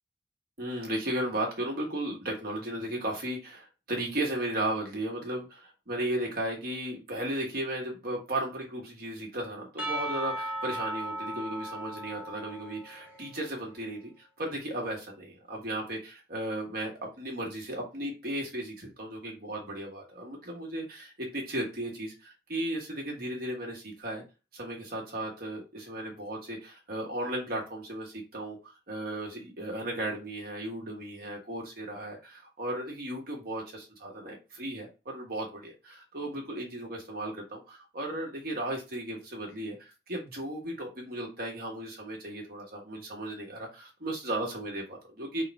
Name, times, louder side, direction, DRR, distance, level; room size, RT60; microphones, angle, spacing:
voice 1, 0.6-24.2 24.5-45.4, right 1 dB, 55° right, -1 dB, 1.3 m, -35 dB
Percussion / Church bell, 9.8-13.4, right 1 dB, 10° right, 0.9 m, -36 dB
3.7 x 2.2 x 4.0 m, 0.30 s
head